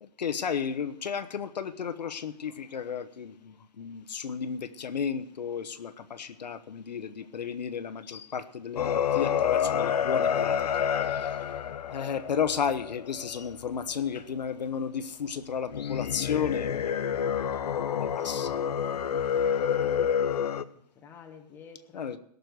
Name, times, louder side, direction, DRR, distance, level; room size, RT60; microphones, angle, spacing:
voice 1, 0.0-10.6 11.0-11.5 11.9-17.0 17.9-18.8 21.9-22.2, left 7 dB, 85° left, 1.2 m, -33 dB
sound 1, 8.8-13.5 15.7-20.6, left 8 dB, 65° left, 0.8 m, -28 dB
voice 2, 18.0-18.4 18.8-19.7 19.9-22.2, left 5 dB, 10° left, 1.2 m, -52 dB
17.0 x 6.8 x 8.0 m
hypercardioid pair, 165°, 21 cm